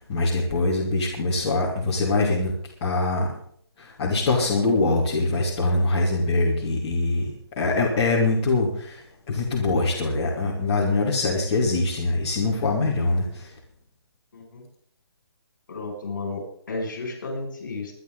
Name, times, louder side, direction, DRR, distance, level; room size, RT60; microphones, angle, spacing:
voice 1, 0.1-2.5 2.8-3.3 3.8-7.3 7.6-13.5, left 2 dB, 15° left, -8 dB, 2.6 m, -23 dB
voice 2, 14.3-14.6 15.7-17.9, left 3 dB, 45° left, 1 dB, 6.5 m, -33 dB
24.0 x 11.0 x 4.0 m, 0.63 s
hypercardioid pair, 180°, 14 cm